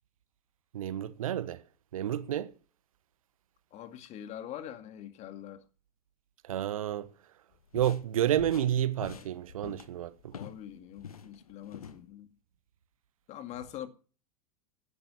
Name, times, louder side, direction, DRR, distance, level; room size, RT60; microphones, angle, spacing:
voice 1, 0.7-1.6 1.9-2.5 6.5-7.1 7.7-10.1, right 11 dB, 65° right, 1.3 m, -30 dB
voice 2, 3.7-5.6 10.3-12.3 13.3-13.9, left 11 dB, 35° left, 2.1 m, -43 dB
sound 1, 7.5-10.7 11.0-12.0, left 7 dB, 75° left, 1.6 m, -46 dB
14.0 x 11.0 x 7.2 m
figure-of-eight pair, 90°, 19 cm